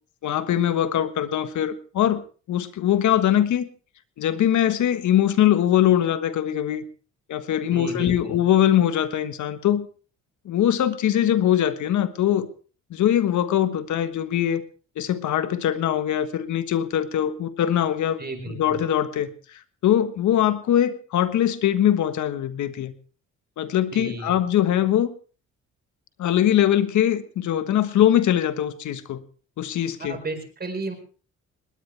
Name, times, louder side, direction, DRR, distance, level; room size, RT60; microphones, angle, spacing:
voice 1, 0.2-2.2 2.5-3.7 4.2-6.8 7.3-9.9 10.4-12.5 12.9-14.6 15.0-18.2 18.5-19.3 19.8-22.9 23.6-25.1 26.2-29.2 29.6-30.2, left 11 dB, 75° left, 12 dB, 1.4 m, -22 dB
voice 2, 7.7-8.4 18.2-18.8 23.9-24.4 30.0-31.0, right 3 dB, 30° right, 6 dB, 4.7 m, -33 dB
20.0 x 18.0 x 3.4 m, 0.39 s
cardioid pair, 90°, 30 cm